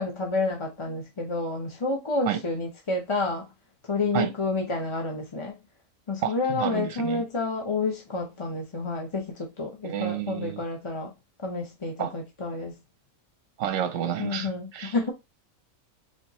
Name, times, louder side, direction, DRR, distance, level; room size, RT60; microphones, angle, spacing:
voice 1, 0.0-3.5 3.8-5.6 6.1-11.1 11.4-12.7 14.2-15.1, left 3 dB, 30° left, 0.6 m, -29 dB
voice 2, 6.2-7.2 9.8-10.6 12.0-12.1 13.6-14.9, right 10 dB, 65° right, 0.9 m, -30 dB
4.4 x 3.2 x 2.9 m
omnidirectional pair, 1.6 m